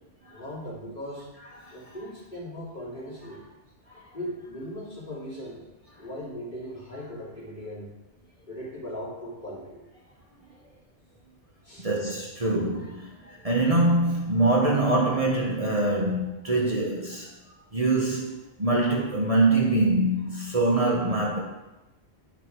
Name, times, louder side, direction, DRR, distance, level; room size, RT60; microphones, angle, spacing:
voice 1, 0.3-1.3 1.7-3.4 4.1-5.6 6.0-7.9 8.5-9.8 11.6-11.9, equal, 45° left, -8 dB, 3.5 m, -38 dB
voice 2, 11.8-17.3 17.7-21.4, right 2 dB, 30° right, -3 dB, 1.3 m, -24 dB
10.5 x 6.2 x 4.7 m, 1.0 s
omnidirectional pair, 1.1 m